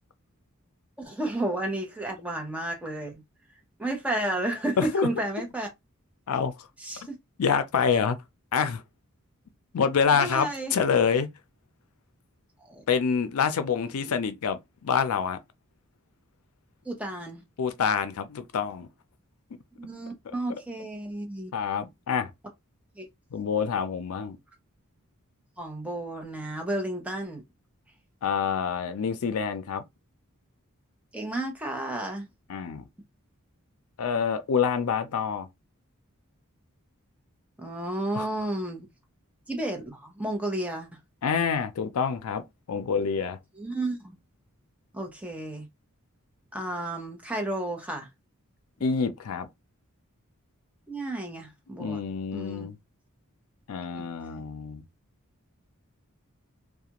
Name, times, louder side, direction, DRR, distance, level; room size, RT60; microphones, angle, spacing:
voice 1, 1.0-3.2 3.8-5.7 6.8-7.2 10.1-10.8 12.6-12.8 16.8-17.4 19.8-21.5 22.9-23.1 25.6-27.4 31.1-32.3 37.6-38.9 39.5-40.9 43.6-44.2 44.9-45.7 46.5-48.1 50.9-52.0 52.3-52.7 53.9-54.1, right 1 dB, 5° right, 0.7 m, -32 dB
voice 2, 4.8-5.1 6.3-6.7 7.4-8.2 8.5-8.8 9.7-11.3 12.9-15.4 17.6-18.9 21.5-22.3 23.3-24.4 28.2-29.8 32.5-32.8 34.0-35.5 38.1-38.3 41.2-42.4 42.7-43.4 48.8-49.5 51.8-52.8 53.7-54.8, left 6 dB, 90° left, 0.4 m, -26 dB
2.4 x 2.2 x 2.9 m
head